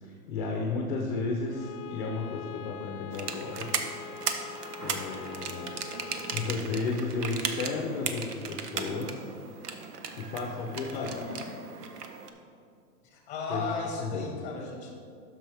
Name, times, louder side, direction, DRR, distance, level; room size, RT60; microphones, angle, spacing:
voice 1, 0.0-3.7 4.8-9.3 10.1-11.2 13.5-13.6 14.0-14.3, left 3 dB, 30° left, 0 dB, 0.8 m, -33 dB
Bowed string instrument, 1.5-6.7, left 8 dB, 70° left, 0.6 m, -44 dB
sound 1, 3.1-12.3, right 6 dB, 80° right, 1.0 m, -37 dB
voice 2, 10.9-11.6 13.0-14.9, left 4 dB, 15° left, 0 dB, 1.4 m, -36 dB
10.0 x 6.8 x 3.4 m, 2.4 s
hypercardioid pair, 160°, 46 cm